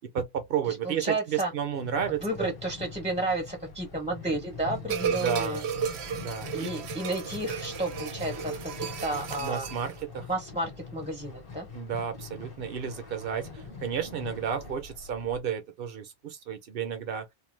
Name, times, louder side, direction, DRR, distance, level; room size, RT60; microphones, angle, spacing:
voice 1, 0.0-2.5 5.1-5.6 6.2-6.7 9.4-10.3 11.7-17.3, right 7 dB, 65° right, 0.8 m, -32 dB
voice 2, 0.7-1.5 2.2-5.6 6.5-9.7 10.3-11.7, right 1 dB, 10° right, 0.6 m, -32 dB
sound 1, 1.5-14.7, left 5 dB, 35° left, 0.9 m, -44 dB
sound 2, 2.0-15.4, left 2 dB, 60° left, 1.1 m, -51 dB
sound 3, 4.9-10.0, right 7 dB, 85° right, 0.9 m, -34 dB
2.4 x 2.2 x 3.2 m
omnidirectional pair, 1.1 m